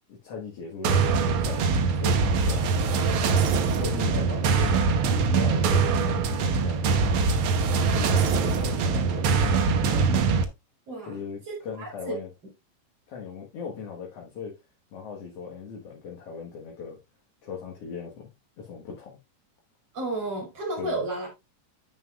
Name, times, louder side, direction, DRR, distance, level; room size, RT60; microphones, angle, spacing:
voice 1, 0.1-3.2 3.8-7.1 7.9-10.1 11.1-12.3 13.1-14.6 14.9-17.0 17.4-18.3 18.6-19.1 20.8-21.0, left 6 dB, 55° left, 2.2 m, -38 dB
sound 1, 0.8-10.4, right 5 dB, 75° right, 1.2 m, -23 dB
voice 2, 10.9-11.2 11.5-12.2 19.9-21.3, right 2 dB, 50° right, 3.8 m, -32 dB
9.2 x 7.4 x 2.4 m
omnidirectional pair, 3.7 m